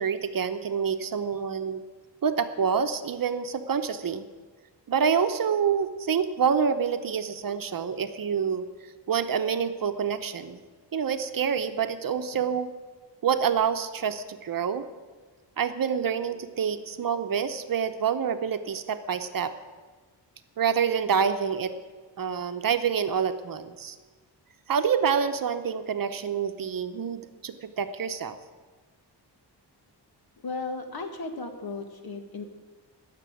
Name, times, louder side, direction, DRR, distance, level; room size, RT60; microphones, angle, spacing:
voice 1, 0.0-1.8 2.2-4.3 4.9-8.6 9.1-10.6 10.9-12.7 13.2-14.8 15.6-19.5 20.6-21.7 22.2-24.0 24.7-28.4, right 7 dB, 50° right, 9 dB, 0.9 m, -27 dB
voice 2, 30.4-32.4, left 3 dB, 60° left, 6 dB, 1.8 m, -35 dB
16.5 x 6.8 x 9.2 m, 1.4 s
wide cardioid pair, 160°, 42 cm